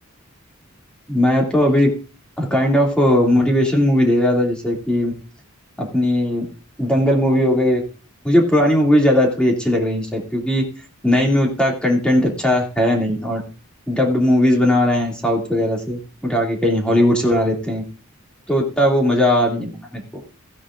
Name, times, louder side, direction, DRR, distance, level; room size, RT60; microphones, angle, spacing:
voice 1, 1.1-1.9 2.4-5.1 5.8-6.4 6.8-7.8 8.2-10.6 11.0-13.4 13.9-17.8 18.5-20.0, left 1 dB, 5° left, -1 dB, 2.6 m, -18 dB
16.5 x 10.0 x 2.6 m, 0.37 s
head